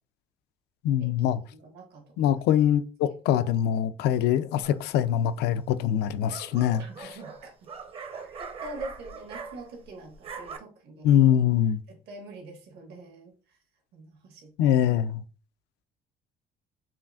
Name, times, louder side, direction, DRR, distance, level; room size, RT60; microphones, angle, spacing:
voice 1, 0.8-1.4 2.2-7.1 11.0-11.8 14.6-15.2, left 10 dB, 80° left, 0.4 m, -23 dB
voice 2, 1.5-2.4 6.8-7.7 8.2-11.3 11.9-13.6 13.9-14.8, right 2 dB, 70° right, 1.4 m, -44 dB
sound 1, 4.6-5.1 5.9-9.9 10.1-10.6, right 5 dB, 35° right, 0.7 m, -42 dB
5.7 x 2.5 x 2.3 m
cardioid pair, 110°, 17 cm